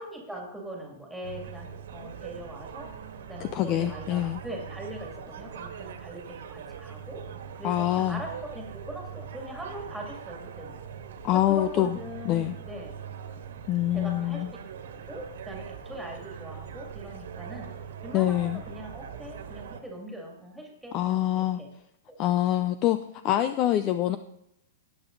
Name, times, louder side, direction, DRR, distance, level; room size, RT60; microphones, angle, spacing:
voice 1, 0.0-3.0 3.2-7.3 7.6-10.8 11.3-12.9 13.9-14.6 15.1-17.7 18.0-21.7 22.1-22.2, right 1 dB, ahead, 0 dB, 2.2 m, -41 dB
sound 1, 1.2-19.8, right 7 dB, 70° right, 1.8 m, -42 dB
voice 2, 3.4-4.4 7.6-8.2 11.2-12.0 12.3-12.6 13.7-14.5 18.1-18.6 20.9-21.6 22.2-23.0 23.2-24.2, left 13 dB, 25° left, 12 dB, 0.4 m, -25 dB
18.5 x 8.0 x 3.9 m, 0.80 s
hypercardioid pair, 170°, 0 cm